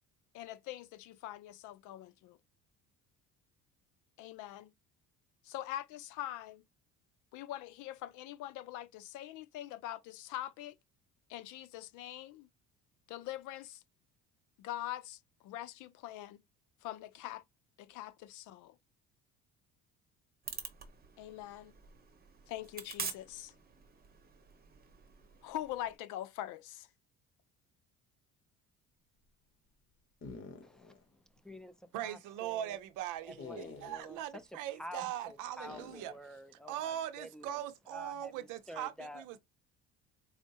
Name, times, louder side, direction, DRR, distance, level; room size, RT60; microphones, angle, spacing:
voice 1, 0.3-2.4 4.2-4.7 5.4-6.6 7.3-10.8 11.3-12.5 13.1-13.8 14.6-15.2 15.4-16.4 16.8-17.4 17.8-18.8 21.2-21.7 22.5-23.5 25.4-26.9, left 13 dB, 75° left, 0.5 m, -43 dB
sound 1, 20.4-26.0, right 5 dB, 30° right, 0.9 m, -46 dB
sound 2, 30.2-31.0 31.4-31.5 33.4-34.2 35.7-36.2, left 4 dB, 45° left, 1.1 m, -48 dB
voice 2, 30.6-30.9 31.4-32.8 33.2-34.2 34.5-37.6 37.9-39.4, equal, ahead, 0.5 m, -50 dB
voice 3, 31.9-36.1 36.7-39.4, right 11 dB, 75° right, 0.6 m, -40 dB
4.4 x 2.1 x 2.8 m
cardioid pair, 100°, 31 cm